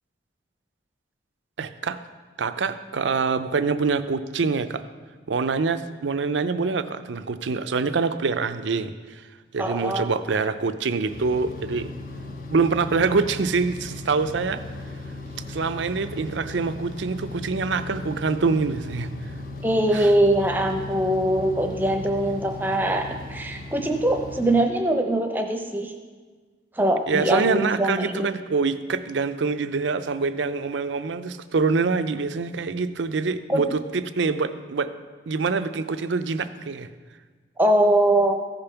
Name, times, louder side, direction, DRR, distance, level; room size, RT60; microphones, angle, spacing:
voice 1, 1.6-2.0 2.4-4.9 5.3-9.2 9.5-11.9 12.5-14.6 15.5-19.1 19.9-20.1 27.1-34.9 35.3-36.9, right 4 dB, 85° right, 11 dB, 0.5 m, -25 dB
voice 2, 9.6-10.1 19.6-25.9 26.8-28.3 33.5-33.6 37.6-38.3, right 1 dB, 10° right, 4 dB, 0.7 m, -22 dB
sound 1, 11.1-24.6, left 2 dB, 50° left, 1.0 m, -37 dB
15.0 x 5.2 x 5.7 m, 1.4 s
head